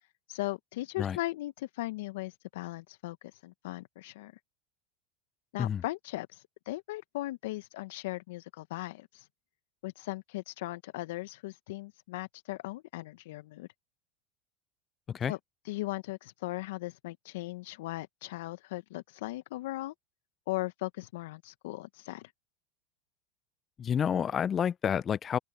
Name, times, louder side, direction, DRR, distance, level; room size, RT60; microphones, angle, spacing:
voice 1, 0.0-4.3 5.5-9.3 9.8-13.7 15.3-15.4 15.6-19.9 20.5-22.3, left 18 dB, 70° left, 1.2 m, -38 dB
voice 2, 23.8-25.4, left 8 dB, 35° left, 0.5 m, -29 dB
open air
hypercardioid pair, 85°, 0 cm